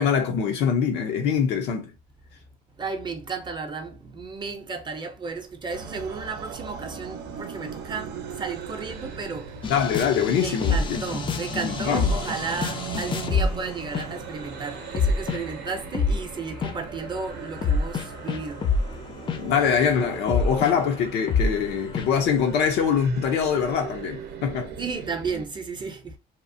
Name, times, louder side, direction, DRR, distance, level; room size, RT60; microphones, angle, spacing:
voice 1, 0.0-1.9 9.7-10.8 11.7-12.1 19.4-24.7, left 7 dB, 80° left, 0.6 m, -23 dB
voice 2, 2.7-9.7 10.4-18.7 24.8-26.2, right 4 dB, 25° right, 0.6 m, -33 dB
sound 1, 5.7-25.5, right 7 dB, 80° right, 0.6 m, -39 dB
sound 2, 9.6-13.6 13.9-14.4 14.8-16.3 16.6-16.8 17.6-21.6 21.9-22.1, left 4 dB, 30° left, 0.3 m, -26 dB
2.8 x 2.0 x 2.6 m
cardioid pair, 110°, 17 cm